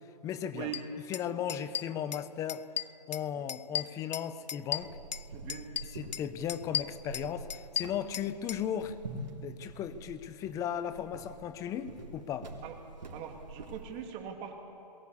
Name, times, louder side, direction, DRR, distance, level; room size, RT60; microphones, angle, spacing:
voice 1, 0.2-0.7 1.1-2.7 3.1-5.0 5.9-9.0 9.4-12.6, left 9 dB, 15° left, 13 dB, 0.7 m, -36 dB
sound 1, 0.7-0.8 1.1-1.2 1.5-2.2 2.5-3.2 3.5-5.2 5.5-6.2 6.5-8.6, left 9 dB, 85° left, 0.5 m, -35 dB
sound 2, 4.8-14.1, right 2 dB, 85° right, 3.1 m, -46 dB
voice 2, 5.3-5.7 12.6-12.8 13.1-14.6, right 9 dB, 25° right, 3 dB, 2.5 m, -41 dB
21.5 x 16.0 x 8.4 m, 2.7 s
hypercardioid pair, 145°, 21 cm